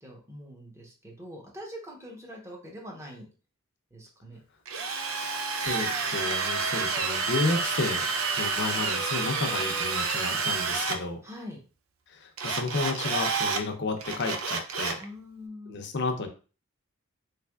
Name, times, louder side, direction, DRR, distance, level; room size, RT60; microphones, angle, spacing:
voice 1, 0.0-3.3 3.9-4.4 11.2-11.6 15.0-15.8, equal, 15° right, -1 dB, 0.9 m, -43 dB
Drill, 4.7-11.0 12.4-13.6 14.0-15.0, right 5 dB, 80° right, 0.5 m, -29 dB
voice 2, 5.6-8.0 8.4-11.2 12.1-15.0 15.7-16.3, left 3 dB, 55° left, 5 dB, 0.6 m, -31 dB
3.4 x 3.3 x 2.3 m, 0.36 s
head